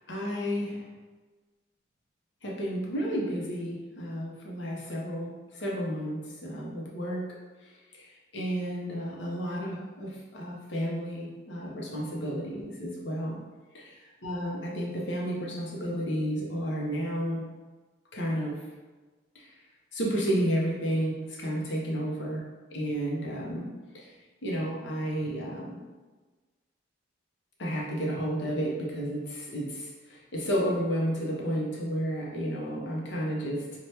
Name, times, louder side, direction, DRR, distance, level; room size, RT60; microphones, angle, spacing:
voice 1, 0.1-0.8 2.4-7.3 7.9-13.4 13.7-14.0 14.2-17.4 18.1-18.6 19.3-19.5 19.9-22.4 22.7-23.7 23.9-24.1 24.4-25.8 27.6-33.8, equal, 65° left, -3 dB, 0.7 m, -32 dB
2.8 x 2.2 x 3.2 m, 1.3 s
head